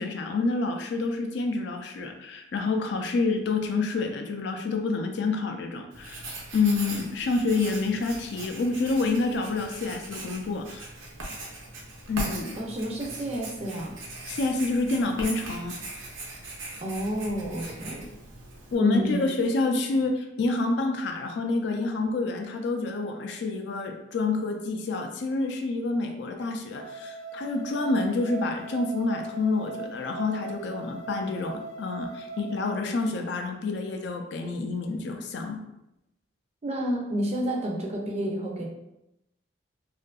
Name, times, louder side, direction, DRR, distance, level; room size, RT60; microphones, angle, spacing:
voice 1, 0.0-6.3 6.5-10.9 12.1-12.6 14.3-15.8 18.7-35.6, left 3 dB, 60° left, 4 dB, 0.3 m, -28 dB
Writing, 5.9-18.7, right 2 dB, 85° right, 0.6 m, -40 dB
voice 2, 12.6-13.9 16.8-18.1 18.8-19.3 36.6-38.7, equal, 35° right, -1 dB, 0.4 m, -30 dB
sound 1, 26.7-32.7, right 6 dB, 45° left, 0.7 m, -39 dB
2.6 x 2.4 x 2.2 m, 0.87 s
head